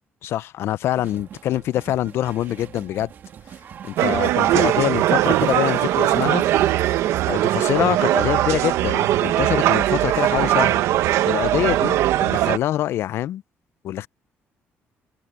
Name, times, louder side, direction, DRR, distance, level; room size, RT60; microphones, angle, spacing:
voice 1, 0.2-3.1 3.8-6.4 7.3-10.8 11.3-13.4 13.8-14.1, left 13 dB, 65° left, 0.5 m, -25 dB
sound 1, 0.9-7.3, right 8 dB, 45° right, 1.5 m, -41 dB
sound 2, 4.0-12.6, right 13 dB, 85° right, 0.8 m, -20 dB
open air
cardioid pair, 160°, 5 cm